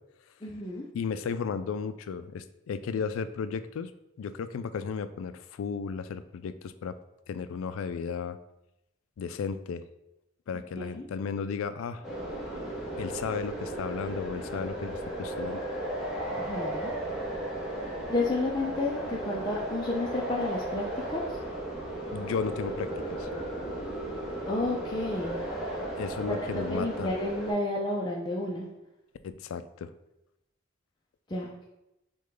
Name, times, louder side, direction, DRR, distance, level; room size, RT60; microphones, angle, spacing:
voice 1, 0.4-0.9 10.7-11.1 16.3-16.9 18.1-21.2 24.4-25.4 26.7-28.7 31.3-31.7, left 2 dB, 20° left, -3 dB, 0.4 m, -31 dB
voice 2, 0.9-3.9 4.2-7.0 7.3-8.4 9.2-9.8 10.5-12.0 12.9-15.6 22.1-22.9 23.2-23.3 26.0-27.1 29.2-29.9, left 6 dB, 85° left, 12 dB, 0.3 m, -34 dB
sound 1, 12.0-27.5, right 1 dB, 5° right, 0.9 m, -35 dB
6.2 x 2.3 x 3.8 m, 0.91 s
head